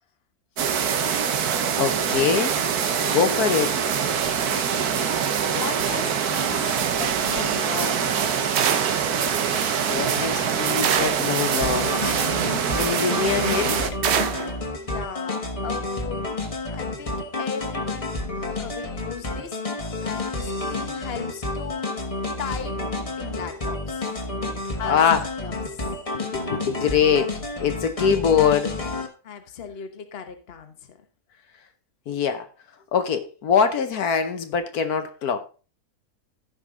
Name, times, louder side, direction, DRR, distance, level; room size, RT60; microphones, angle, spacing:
sound 1, 0.6-13.9, right 7 dB, 85° right, 1.5 m, -24 dB
voice 1, 1.7-2.5 3.0-3.7 9.9-13.8 24.9-25.3 26.1-28.8 32.1-32.4 32.9-35.4, left 7 dB, 80° left, 1.4 m, -23 dB
voice 2, 4.3-5.1 5.5-8.3 14.7-16.3 16.7-19.6 20.0-22.0 22.4-22.8 23.2-24.1 24.8-25.8 29.2-31.0, left 7 dB, 45° left, 1.2 m, -37 dB
sound 2, 8.6-9.1 10.8-11.4 14.0-14.5, right 8 dB, 55° right, 0.8 m, -24 dB
sound 3, 11.6-29.1, left 2 dB, 25° left, 1.4 m, -30 dB
15.0 x 5.3 x 3.7 m
omnidirectional pair, 1.6 m